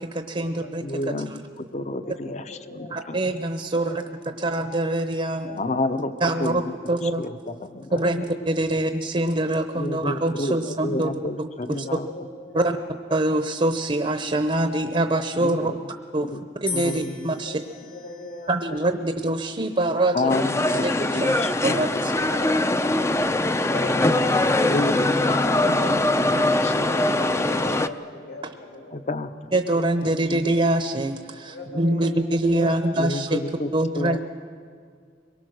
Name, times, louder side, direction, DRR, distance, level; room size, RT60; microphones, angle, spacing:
voice 1, 0.0-1.0 2.9-5.5 6.2-6.6 6.9-7.3 7.9-11.1 11.4-11.5 11.8-11.9 12.5-12.8 13.1-15.7 16.1-16.3 16.6-17.6 18.5-20.3 20.8-21.3 21.6-22.4 29.5-33.4 33.7-34.2, right 1 dB, 35° right, 7 dB, 0.8 m, -24 dB
voice 2, 0.8-3.2 5.5-6.1 6.4-6.7 7.2-8.0 9.7-10.6 10.8-12.1 15.4-15.8 16.3-16.4 16.7-17.4 20.1-20.9 21.1-22.0 24.7-25.4 25.6-26.0 26.4-27.1 27.4-27.6 28.9-29.3 30.0-30.2 32.9-34.2, left 2 dB, 40° left, 11 dB, 0.8 m, -30 dB
voice 3, 1.9-3.0 3.7-4.1 4.4-4.5 5.4-5.5 5.8-6.0 7.7-8.2 10.6-10.8 11.8-12.9 16.2-16.4 17.4-19.0 21.7-23.2 23.7-24.7 25.3-26.1 26.4-29.0 29.8-29.9 31.5-32.8, left 2 dB, 75° left, 1 dB, 3.6 m, -39 dB
sound 1, 16.7-18.9 19.7-20.2, left 5 dB, 55° left, 1.8 m, -38 dB
sound 2, 20.3-27.9, left 2 dB, 15° left, 0.5 m, -22 dB
23.5 x 22.5 x 6.4 m, 2.1 s
head